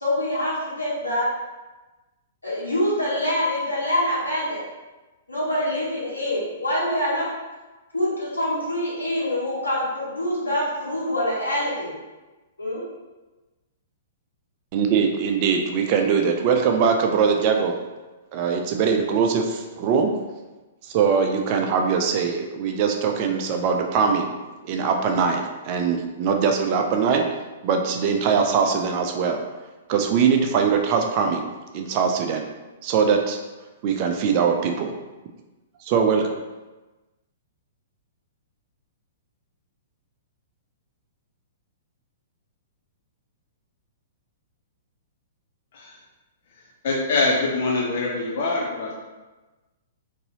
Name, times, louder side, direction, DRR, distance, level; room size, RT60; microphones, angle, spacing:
voice 1, 0.0-1.3 2.4-4.6 5.3-7.3 7.9-11.9 12.6-12.8, left 1 dB, 85° left, -7 dB, 1.4 m, -25 dB
voice 2, 14.7-17.7 18.3-20.1 20.8-24.3 24.6-27.2 27.6-29.4 29.9-31.4 31.7-32.5 32.8-33.4 33.8-34.9 35.8-36.4, right 6 dB, 40° right, 4 dB, 0.4 m, -22 dB
voice 3, 46.8-49.0, left 3 dB, 50° left, -2 dB, 0.5 m, -24 dB
4.0 x 2.7 x 2.7 m, 1.2 s
figure-of-eight pair, 110°, 0 cm